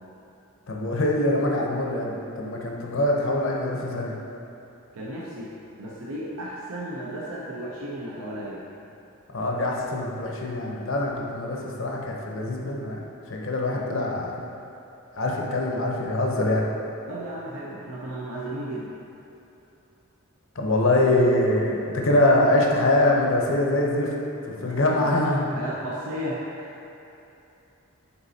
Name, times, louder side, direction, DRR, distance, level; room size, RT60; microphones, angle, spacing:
voice 1, 0.7-4.1 9.3-13.0 13.3-14.3 15.1-16.6 20.6-24.1 24.4-25.5, left 1 dB, 60° left, -1 dB, 0.7 m, -23 dB
voice 2, 4.9-5.5 5.8-8.6 17.1-18.9 24.5-25.2 25.5-26.7, right 1 dB, 80° right, -5 dB, 0.7 m, -34 dB
8.7 x 4.0 x 2.8 m, 2.9 s
head